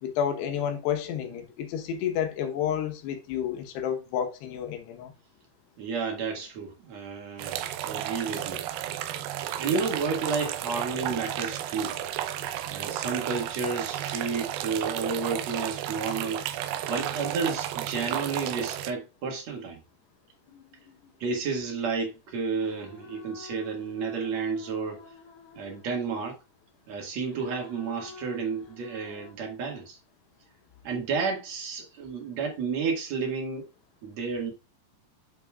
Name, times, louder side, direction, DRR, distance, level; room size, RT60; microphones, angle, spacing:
voice 1, 0.0-5.1, left 9 dB, 80° left, 3.2 m, -30 dB
voice 2, 5.8-9.0 9.6-12.0 12.7-16.5 16.9-19.8 21.2-25.0 25.6-26.4 26.9-30.0 30.8-33.7 34.0-34.5, right 5 dB, 50° right, 2.6 m, -31 dB
sound 1, 7.4-18.9, right 12 dB, 80° right, 2.3 m, -33 dB
sound 2, 20.5-22.0 22.6-26.4 27.3-29.3, left 3 dB, 50° left, 2.3 m, -49 dB
9.4 x 6.8 x 2.4 m
omnidirectional pair, 4.9 m